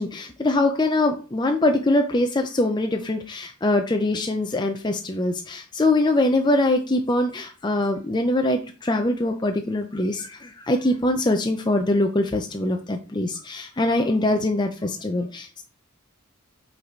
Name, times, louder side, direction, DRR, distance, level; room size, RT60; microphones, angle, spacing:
voice 1, 0.0-15.6, left 2 dB, 20° left, 4 dB, 0.6 m, -23 dB
8.2 x 4.1 x 4.6 m, 0.36 s
head